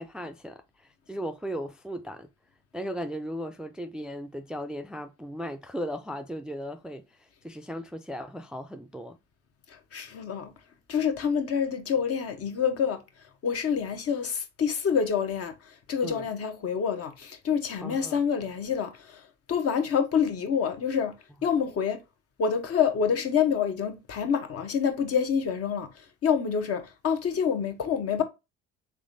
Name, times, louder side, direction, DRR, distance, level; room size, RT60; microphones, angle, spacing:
voice 1, 0.0-2.3 2.7-9.2 16.0-16.3 17.8-18.2, equal, 5° right, 0.3 m, -37 dB
voice 2, 9.7-10.5 10.9-13.0 13.4-21.1 21.4-22.0 22.4-28.2, left 7 dB, 55° left, 0.9 m, -27 dB
3.5 x 3.4 x 2.6 m
supercardioid pair, 65°, 29 cm